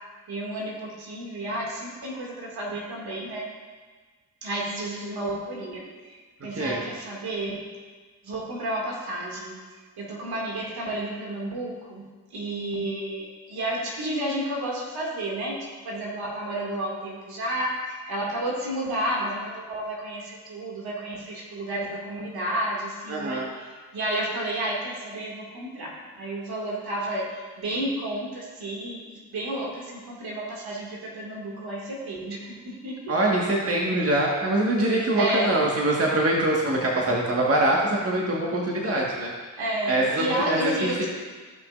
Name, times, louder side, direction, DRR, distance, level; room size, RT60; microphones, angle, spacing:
voice 1, 0.3-3.5 4.4-7.6 8.2-9.6 10.0-33.1 35.2-35.6 39.6-41.1, right 1 dB, 65° right, -2 dB, 2.4 m, -31 dB
voice 2, 23.1-23.5 33.1-39.3 39.9-40.9, right 1 dB, 35° right, -3 dB, 1.7 m, -24 dB
14.5 x 5.9 x 2.6 m, 1.4 s
hypercardioid pair, 40°, 41 cm